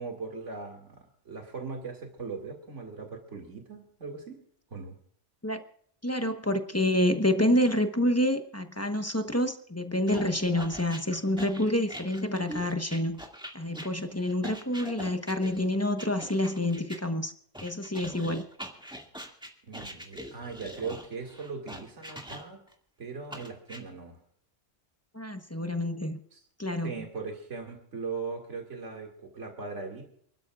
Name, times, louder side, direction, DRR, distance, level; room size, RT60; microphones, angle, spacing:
voice 1, 0.0-4.4 4.7-5.0 19.6-22.6 23.0-24.2 26.3-26.4 26.8-30.1, right 4 dB, 70° right, 2 dB, 2.5 m, -39 dB
voice 2, 6.0-13.2 13.5-17.3 17.6-18.4 25.1-26.2 26.6-26.9, left 1 dB, 15° left, 6 dB, 0.9 m, -28 dB
sound 1, 10.1-17.0 17.5-22.7 23.3-23.8, equal, 5° right, 2.0 m, -43 dB
29.0 x 12.5 x 2.4 m, 0.64 s
omnidirectional pair, 1.3 m